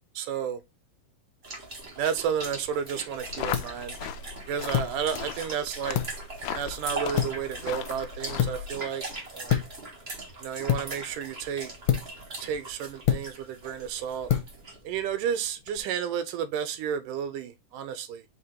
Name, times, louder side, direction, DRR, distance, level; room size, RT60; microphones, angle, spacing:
voice 1, 0.2-0.6 2.0-4.0 4.5-6.0 6.5-9.0 9.3-9.6 10.4-11.7 12.4-14.3 14.8-18.3, right 8 dB, 85° right, 2.3 m, -32 dB
sound 1, 1.4-15.0, right 2 dB, 60° right, 0.6 m, -41 dB
sound 2, 2.3-15.8, left 10 dB, 65° left, 1.7 m, -32 dB
sound 3, 3.2-8.7, left 8 dB, 85° left, 1.6 m, -38 dB
5.0 x 4.3 x 4.4 m
omnidirectional pair, 3.8 m